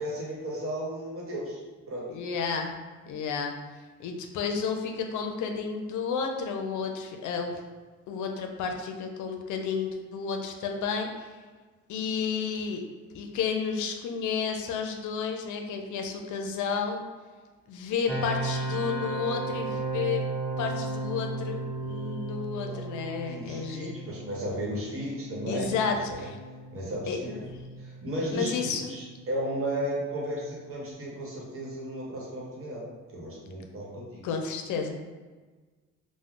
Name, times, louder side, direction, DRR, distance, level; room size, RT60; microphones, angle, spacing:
voice 1, 0.0-1.6 1.9-2.0 22.6-22.8 23.3-26.3 26.7-27.4 27.8-32.8 33.1-34.2, right 1 dB, 45° right, -4 dB, 1.0 m, -34 dB
voice 2, 2.1-2.7 3.1-3.5 4.0-7.5 8.1-11.3 11.9-12.8 13.1-17.1 17.7-20.3 20.6-24.0 25.5-26.4 27.1-27.2 28.3-28.9 34.2-35.0, left 5 dB, 75° left, 3 dB, 0.5 m, -31 dB
sound 1, 18.1-30.9, right 2 dB, 5° left, 0.4 m, -36 dB
2.3 x 2.1 x 3.6 m, 1.3 s
cardioid pair, 90°, 30 cm